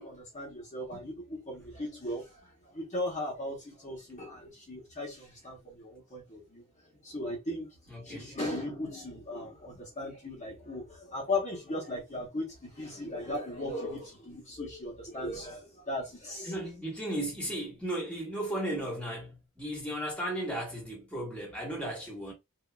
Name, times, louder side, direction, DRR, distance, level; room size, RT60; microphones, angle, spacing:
voice 1, 0.0-2.3 2.7-6.6 7.0-7.7 8.0-16.5, left 1 dB, 30° left, 1.1 m, -37 dB
voice 2, 7.9-8.4 16.4-22.3, right 1 dB, 5° left, 1.3 m, -35 dB
3.9 x 2.7 x 2.3 m
head